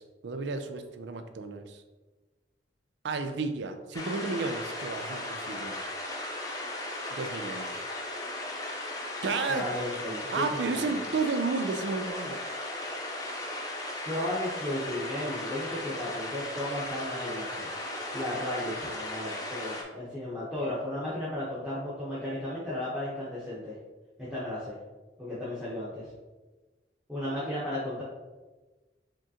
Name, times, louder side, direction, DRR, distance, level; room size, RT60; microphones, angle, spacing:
voice 1, 0.0-1.8 3.0-5.8 7.1-7.8 9.2-9.7 10.3-12.4, right 4 dB, 70° right, 8 dB, 0.5 m, -32 dB
sound 1, 3.9-19.8, left 1 dB, 20° left, 0.7 m, -36 dB
voice 2, 9.5-10.9 14.1-17.7 18.1-23.8 24.2-24.8 25.2-26.1 27.1-28.0, left 1 dB, 5° right, -10 dB, 1.0 m, -34 dB
5.0 x 3.7 x 2.9 m, 1.2 s
head